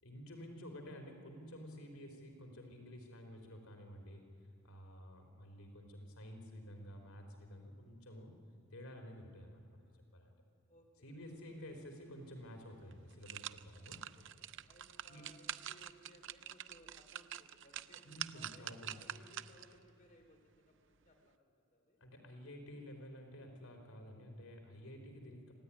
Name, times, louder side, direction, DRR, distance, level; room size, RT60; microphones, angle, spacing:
voice 1, 0.0-4.3 4.6-8.3 8.7-10.3 11.0-14.0 15.1-15.3 18.0-19.0 22.0-25.5, equal, 80° left, 4 dB, 3.7 m, -51 dB
voice 2, 10.7-11.2 14.1-18.0 18.3-22.0, left 1 dB, 35° left, 3 dB, 3.3 m, -63 dB
sound 1, 12.4-12.5 12.9-19.8 20.2-20.3, right 11 dB, 55° right, 0.6 m, -47 dB
26.0 x 17.0 x 9.9 m, 2.8 s
head